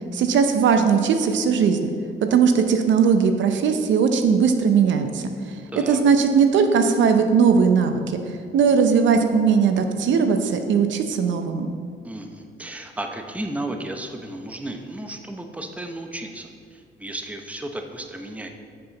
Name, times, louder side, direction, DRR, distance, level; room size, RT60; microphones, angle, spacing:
voice 1, 0.1-1.9 2.3-5.3 5.9-8.2 8.5-11.7, right 6 dB, 70° right, 7 dB, 0.7 m, -19 dB
voice 2, 5.7-6.0 12.0-18.5, right 1 dB, 5° right, 5 dB, 0.7 m, -34 dB
7.8 x 6.8 x 4.0 m, 2.2 s
cardioid pair, 90°, 20 cm